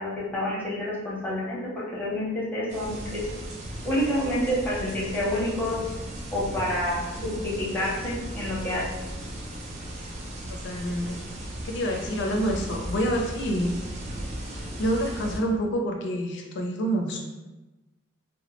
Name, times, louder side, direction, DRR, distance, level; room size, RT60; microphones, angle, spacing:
voice 1, 0.0-1.6 1.9-3.2 3.8-5.8 6.3-9.0, left 1 dB, 10° left, -7 dB, 0.6 m, -28 dB
sound 1, 2.7-15.4, right 1 dB, 35° right, 0.4 m, -37 dB
voice 2, 10.6-11.2 11.6-13.7 14.5-17.2, right 1 dB, 55° left, 1 dB, 0.4 m, -27 dB
2.1 x 2.0 x 2.9 m, 1.1 s
head